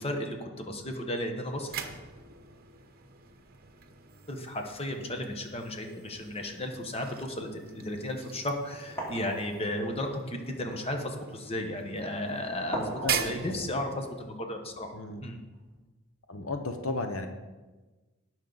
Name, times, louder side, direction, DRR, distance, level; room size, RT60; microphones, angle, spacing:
voice 1, 0.0-1.7 4.3-12.9 13.2-14.9 15.2-15.4, left 1 dB, 25° left, 4 dB, 1.1 m, -34 dB
sound 1, 1.3-14.4, right 8 dB, 45° right, 0.9 m, -41 dB
sound 2, 8.4-8.5 9.0-10.7 12.7-15.2 15.5-15.7, right 1 dB, 10° left, 2.9 m, -39 dB
voice 2, 13.0-13.7 14.9-15.2 16.3-17.3, left 2 dB, 70° left, 6 dB, 0.9 m, -34 dB
18.0 x 6.3 x 4.0 m, 1.2 s
head